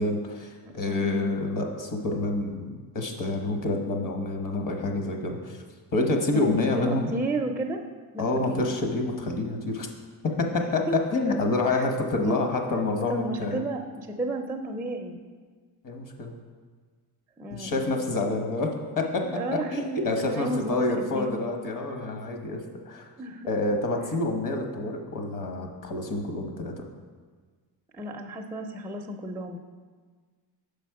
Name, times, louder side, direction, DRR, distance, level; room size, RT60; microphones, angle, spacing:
voice 1, 0.0-5.6 5.9-7.1 8.2-9.9 10.2-10.9 11.1-13.6 15.8-16.3 17.5-18.7 19.0-19.3 19.5-23.0 23.5-26.7, left 2 dB, 45° left, 3 dB, 1.1 m, -28 dB
voice 2, 0.6-1.3 6.3-7.8 8.1-8.7 10.9-11.0 11.7-11.9 12.1-12.4 13.1-15.2 17.4-18.0 19.2-21.4 23.2-23.5 27.9-29.6, right 1 dB, 5° right, 3 dB, 0.4 m, -33 dB
6.2 x 5.1 x 4.7 m, 1.5 s
cardioid pair, 100°, 44 cm